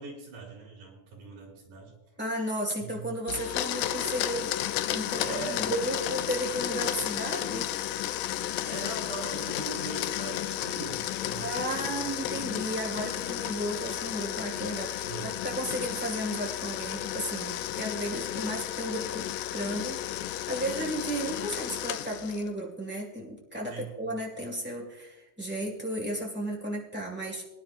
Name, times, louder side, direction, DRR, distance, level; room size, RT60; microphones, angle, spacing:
voice 1, 0.0-1.9 2.8-3.1 5.2-5.7 8.7-12.5 15.0-15.3 23.7-24.0, right 4 dB, 80° right, -2 dB, 4.8 m, -41 dB
voice 2, 2.2-4.5 4.9-7.7 11.4-27.4, right 1 dB, 10° right, -2 dB, 0.5 m, -34 dB
Domestic sounds home sounds, 3.3-22.5, left 13 dB, 85° left, 1.6 m, -33 dB
19.0 x 10.5 x 2.5 m, 1.0 s
omnidirectional pair, 3.8 m